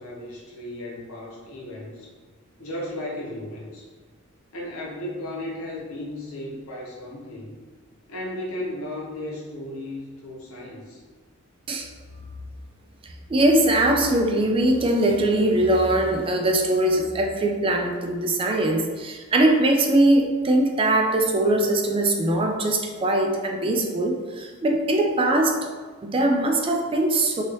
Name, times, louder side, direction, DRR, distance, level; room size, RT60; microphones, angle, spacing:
voice 1, 0.0-2.1 2.6-3.9 4.5-7.6 8.1-11.0, left 1 dB, 80° left, -4 dB, 0.9 m, -35 dB
voice 2, 13.3-25.6 26.0-27.4, right 1 dB, 25° right, 3 dB, 0.3 m, -21 dB
3.0 x 2.8 x 3.0 m, 1.5 s
head